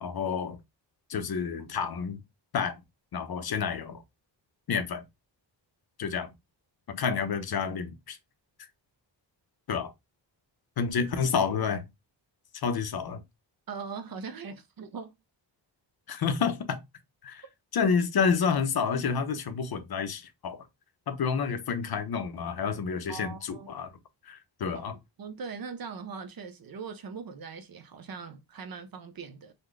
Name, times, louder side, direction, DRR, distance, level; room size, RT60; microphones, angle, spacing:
voice 1, 0.0-0.6 1.1-2.2 2.5-2.8 3.1-4.0 4.7-5.0 6.0-6.3 6.9-8.2 9.7-9.9 10.8-11.8 12.5-13.2 16.1-16.8 17.2-17.4 17.7-20.6 21.1-23.9 24.2-25.0, left 6 dB, 55° left, 0.6 m, -29 dB
voice 2, 13.7-15.1 23.1-23.7 24.7-24.9 25.2-29.5, right 5 dB, 50° right, 0.6 m, -40 dB
4.0 x 2.1 x 3.1 m
wide cardioid pair, 165°, 45 cm